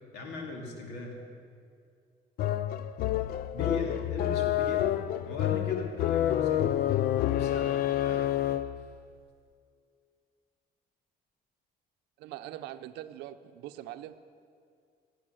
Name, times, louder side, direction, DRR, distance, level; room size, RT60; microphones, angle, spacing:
voice 1, 0.1-1.1 3.5-4.9 5.2-6.8 7.3-8.3, left 2 dB, 85° left, 1 dB, 2.4 m, -39 dB
sound 1, 2.4-8.9, left 12 dB, 60° left, 0.4 m, -28 dB
voice 2, 12.2-14.2, right 13 dB, 90° right, 11 dB, 0.6 m, -42 dB
16.5 x 8.2 x 6.3 m, 2.2 s
cardioid pair, 110°, 17 cm